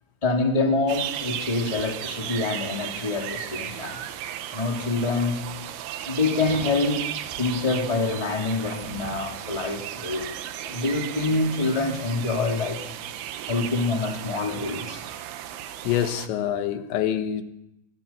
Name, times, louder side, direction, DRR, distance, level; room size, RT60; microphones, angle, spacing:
voice 1, 0.2-4.1 4.5-5.4 6.1-7.1 7.4-10.3 10.6-12.8 13.5-15.0, left 3 dB, 10° left, 2.5 m, -26 dB
sound 1, 0.9-16.3, right 11 dB, 75° right, 2.9 m, -35 dB
voice 2, 15.8-17.4, left 10 dB, 90° left, 3.6 m, -25 dB
24.5 x 23.5 x 6.0 m
omnidirectional pair, 5.0 m